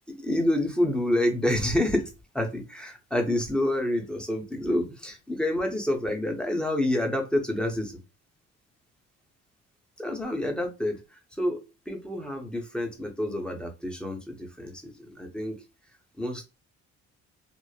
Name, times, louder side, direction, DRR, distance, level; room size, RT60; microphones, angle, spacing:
voice 1, 0.1-2.1 2.3-7.9 10.0-15.6 16.2-16.5, left 1 dB, 5° left, 2 dB, 0.8 m, -28 dB
3.0 x 2.1 x 2.3 m, 0.29 s
cardioid pair, 90°, 30 cm